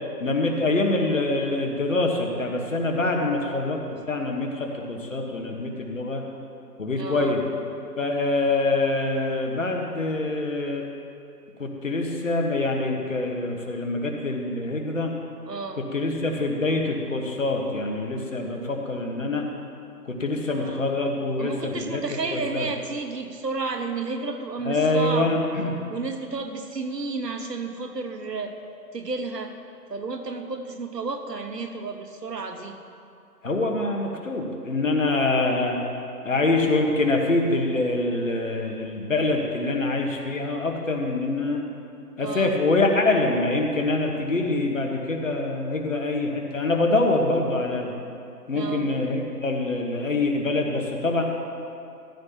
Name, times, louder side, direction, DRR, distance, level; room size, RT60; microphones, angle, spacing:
voice 1, 0.2-3.8 4.1-6.2 6.8-7.4 8.0-10.9 11.6-15.1 15.9-19.5 20.1-22.0 22.3-22.7 24.7-25.7 33.4-35.8 36.2-41.6 42.2-47.9 48.5-51.2, left 2 dB, 50° left, 2 dB, 1.4 m, -25 dB
voice 2, 7.0-7.4 15.5-15.9 20.5-20.9 21.4-25.5 25.9-28.5 28.9-29.5 29.9-32.8 42.2-42.6 48.5-49.0, right 3 dB, 80° right, 6 dB, 1.2 m, -32 dB
14.0 x 12.0 x 2.9 m, 2.5 s
figure-of-eight pair, 170°, 48 cm